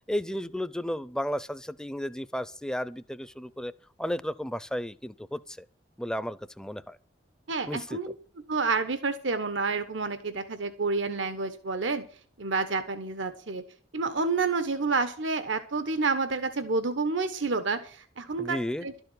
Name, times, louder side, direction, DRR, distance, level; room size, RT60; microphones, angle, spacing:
voice 1, 0.1-3.7 4.0-5.7 6.0-7.0 7.7-8.1 18.4-18.9, equal, 5° left, 0.5 m, -33 dB
voice 2, 7.5-8.1 8.5-12.0 12.4-13.6 13.9-19.0, right 4 dB, 90° right, 1.2 m, -29 dB
12.5 x 7.0 x 9.6 m
head